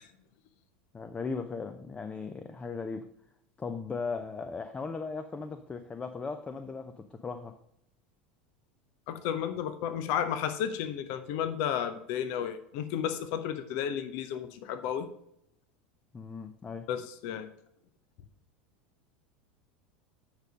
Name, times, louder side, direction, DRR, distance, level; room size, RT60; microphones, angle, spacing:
voice 1, 0.9-3.1 3.6-7.6 16.1-16.9, left 4 dB, 20° left, 0.6 m, -37 dB
voice 2, 9.1-15.1 16.9-17.5, left 9 dB, 55° left, 0.7 m, -32 dB
9.0 x 5.3 x 5.0 m
hypercardioid pair, 80°, 5 cm